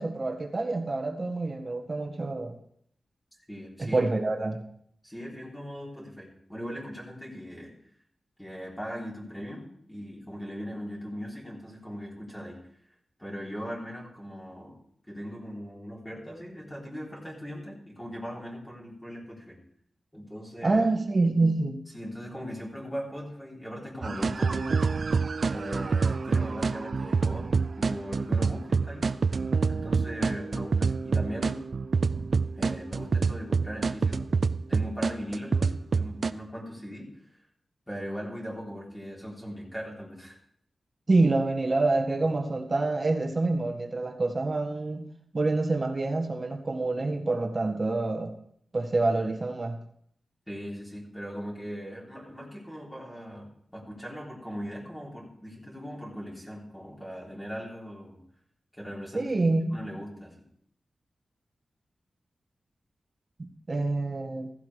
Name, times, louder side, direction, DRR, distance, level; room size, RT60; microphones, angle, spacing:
voice 1, 0.0-2.6 3.8-4.6 20.6-21.8 41.1-45.1 45.3-48.3 48.7-49.8 59.1-59.8 63.4-64.5, right 2 dB, 35° right, 3 dB, 1.7 m, -27 dB
voice 2, 3.5-4.0 5.0-7.7 8.4-12.6 13.2-14.8 15.1-19.6 20.1-20.8 21.9-24.9 25.5-27.5 27.8-29.1 29.7-31.7 32.6-34.3 34.7-37.1 37.9-40.4 50.5-58.2 58.8-59.3 59.7-60.4, equal, 10° left, -4 dB, 3.5 m, -39 dB
sound 1, 24.0-36.3, right 4 dB, 55° right, 0.4 m, -27 dB
15.5 x 14.5 x 3.4 m, 0.66 s
wide cardioid pair, 110°, 0 cm